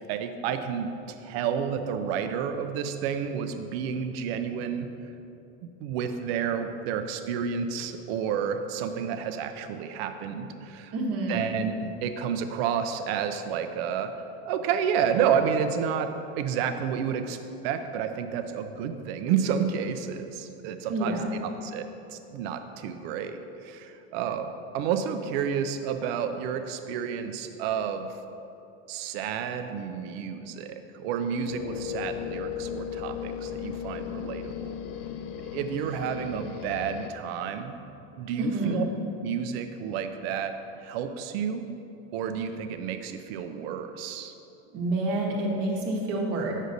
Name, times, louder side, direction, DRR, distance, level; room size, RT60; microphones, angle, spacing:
voice 1, 0.1-4.9 5.6-10.9 11.3-14.1 14.5-17.4 17.6-28.1 28.9-34.8 35.3-37.8 38.2-38.8 39.2-40.5 40.8-41.7 42.1-44.3, right 7 dB, 70° right, 8 dB, 0.6 m, -30 dB
voice 2, 10.9-11.4 20.9-21.3 38.4-38.8 44.7-46.5, right 2 dB, 45° right, -1 dB, 1.1 m, -28 dB
sound 1, 31.5-37.1, left 9 dB, 60° left, 0.4 m, -36 dB
8.0 x 6.2 x 2.6 m, 2.8 s
supercardioid pair, 145°, 32 cm